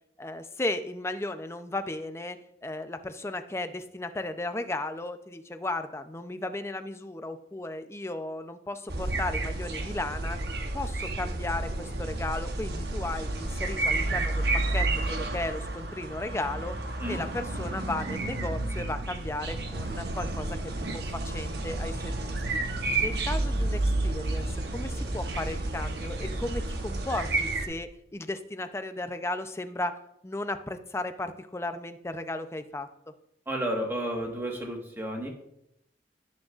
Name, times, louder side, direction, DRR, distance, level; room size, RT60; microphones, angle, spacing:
voice 1, 0.2-10.4 10.7-16.8 17.1-22.4 23.0-30.0 30.2-32.9, left 2 dB, 15° left, 9 dB, 0.5 m, -35 dB
sound 1, 8.9-27.7, right 2 dB, 65° right, 1.1 m, -31 dB
voice 2, 33.5-35.3, right 1 dB, 15° right, 1 dB, 1.4 m, -32 dB
16.5 x 6.4 x 2.4 m, 0.79 s
head